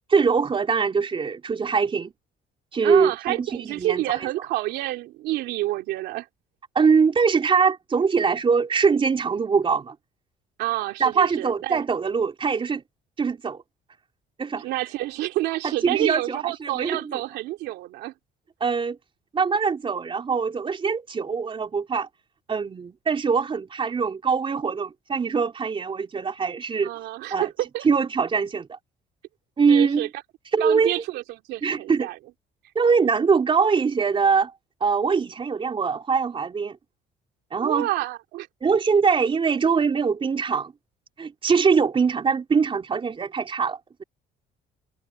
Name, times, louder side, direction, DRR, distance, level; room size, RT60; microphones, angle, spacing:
voice 1, 0.1-2.1 2.7-4.3 6.7-9.9 11.0-12.8 13.2-13.6 14.4-14.7 15.6-17.2 18.6-19.0 19.3-22.1 22.5-26.9 27.3-27.5 27.8-28.8 29.6-30.1 30.5-30.9 31.6-32.1 32.8-34.5 34.8-36.8 37.5-37.9 38.6-40.7 41.2-44.0, right 5 dB, 30° right, 3.9 m, -22 dB
voice 2, 2.8-6.3 10.6-11.8 14.5-18.1 26.8-27.9 29.7-30.1 30.6-32.2 37.6-38.5, right 16 dB, 85° right, 3.0 m, -28 dB
cardioid pair, 110°, 17 cm